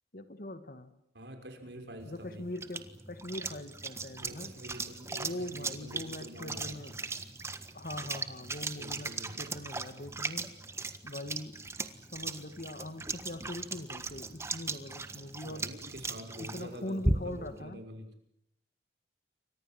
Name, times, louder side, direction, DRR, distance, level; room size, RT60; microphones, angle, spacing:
voice 1, 0.1-0.9 2.0-4.5 5.1-6.9 7.7-10.5 11.0-11.6 12.1-15.7 16.4-17.8, left 1 dB, 50° left, 10 dB, 2.1 m, -42 dB
voice 2, 1.1-2.4 4.2-7.0 8.8-9.6 15.4-18.1, equal, 75° right, 5 dB, 5.9 m, -46 dB
sound 1, 2.0-17.5, right 2 dB, 15° right, 1.5 m, -38 dB
29.5 x 25.0 x 7.8 m, 0.74 s
head